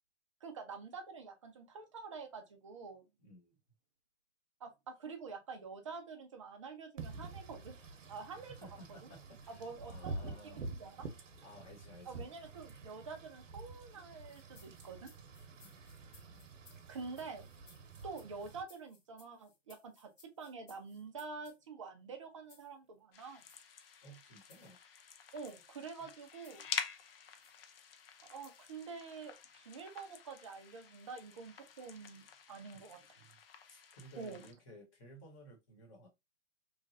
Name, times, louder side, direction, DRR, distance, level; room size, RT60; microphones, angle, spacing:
voice 1, 0.4-3.0 4.6-8.5 8.9-9.1 9.5-11.1 12.1-15.1 16.9-17.5 18.0-23.5 25.3-26.6 28.3-33.1 34.2-34.5, right 4 dB, 25° right, 0.4 m, -47 dB
voice 2, 3.2-3.6 8.4-10.7 11.4-12.3 15.6-16.4 24.0-24.8 26.0-26.1 32.7-32.8 33.2-36.1, equal, 25° left, 1.1 m, -56 dB
Wind / Rain, 7.0-18.6, right 3 dB, 80° right, 0.8 m, -48 dB
sound 1, 14.2-21.6 22.5-22.7 23.4-23.6 24.5-24.7 25.3-25.7 26.4-26.7 27.4-27.6 28.4-28.7, left 4 dB, 75° left, 1.4 m, -65 dB
sound 2, 23.1-34.5, left 7 dB, 50° left, 0.5 m, -48 dB
3.1 x 2.3 x 2.5 m
hypercardioid pair, 150°, 37 cm